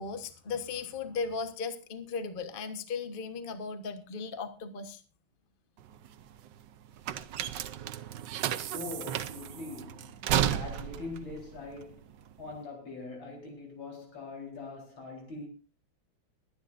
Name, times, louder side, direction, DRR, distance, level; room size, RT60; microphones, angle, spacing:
voice 1, 0.0-5.0, left 5 dB, 30° left, 1.2 m, -36 dB
sound 1, 5.8-12.6, right 10 dB, 70° right, 1.3 m, -33 dB
voice 2, 8.7-10.2 10.5-12.0 12.4-15.5, left 3 dB, 90° left, 4.9 m, -42 dB
22.0 x 10.5 x 2.6 m
omnidirectional pair, 2.1 m